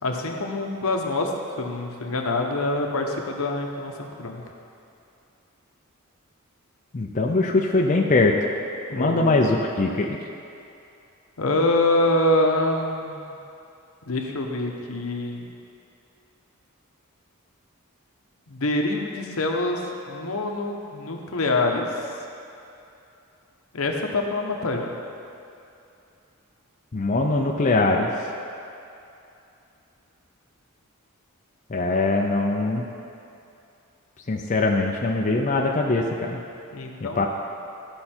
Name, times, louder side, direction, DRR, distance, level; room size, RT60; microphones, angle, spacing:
voice 1, 0.0-4.4 8.9-9.5 11.4-13.3 14.0-15.5 18.5-21.9 23.7-24.9 36.7-37.3, left 2 dB, 75° left, 2 dB, 1.0 m, -25 dB
voice 2, 6.9-8.4 8.9-10.2 26.9-28.1 31.7-32.8 34.3-36.4 37.2-37.3, left 2 dB, 35° left, 0 dB, 0.5 m, -22 dB
13.5 x 5.4 x 4.4 m, 2.7 s
head